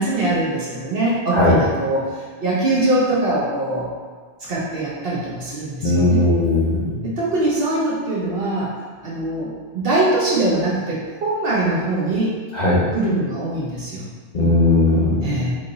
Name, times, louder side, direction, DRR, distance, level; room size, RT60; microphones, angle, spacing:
voice 1, 0.0-3.9 4.4-6.2 7.0-8.7 9.0-12.3 12.9-14.0 15.2-15.6, right 2 dB, 60° right, -6 dB, 0.9 m, -22 dB
voice 2, 5.8-7.0 12.5-12.8 14.3-15.4, left 2 dB, 50° left, -7 dB, 0.7 m, -17 dB
3.2 x 2.5 x 3.8 m, 1.5 s
omnidirectional pair, 1.1 m